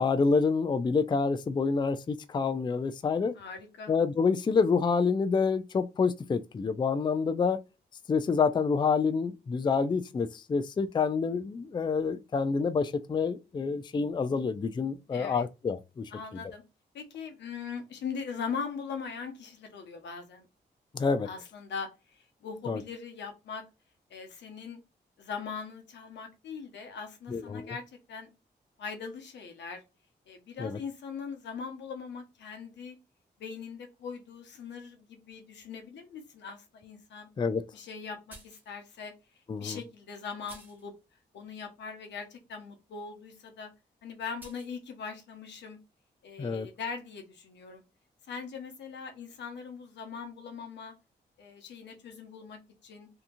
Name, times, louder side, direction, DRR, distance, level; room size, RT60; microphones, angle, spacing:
voice 1, 0.0-3.3 3.9-7.6 8.1-16.4 20.9-21.3 22.7-22.8 27.3-27.7 30.6-30.8 37.4-37.6 39.5-39.8 46.4-46.7, left 5 dB, 25° left, 0.3 m, -28 dB
voice 2, 3.4-4.0 15.1-15.4 16.1-16.6 16.9-20.5 21.2-23.6 24.1-24.8 25.2-27.8 28.1-28.3 28.8-29.8 30.3-33.0 33.4-37.3 37.7-39.1 39.6-40.9 41.3-43.7 44.0-45.8 46.2-47.8 48.3-50.9 51.4-53.1, left 6 dB, 85° left, 0.7 m, -41 dB
sound 1, 38.3-38.7 39.6-39.7 40.5-40.9 44.4-44.7, right 1 dB, 10° right, 0.9 m, -51 dB
2.8 x 2.3 x 2.5 m
cardioid pair, 65°, 18 cm